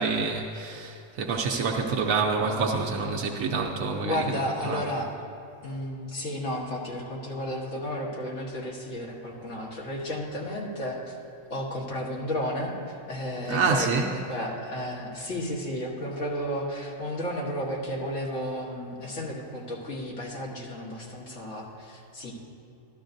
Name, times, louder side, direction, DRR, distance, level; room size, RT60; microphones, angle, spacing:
voice 1, 0.0-4.2 4.6-4.8 13.5-14.1, right 4 dB, 80° right, 1 dB, 1.1 m, -27 dB
voice 2, 4.0-5.1 5.6-11.2 11.5-22.3, equal, 70° left, -3 dB, 1.9 m, -33 dB
12.5 x 12.5 x 2.6 m, 2.8 s
omnidirectional pair, 1.4 m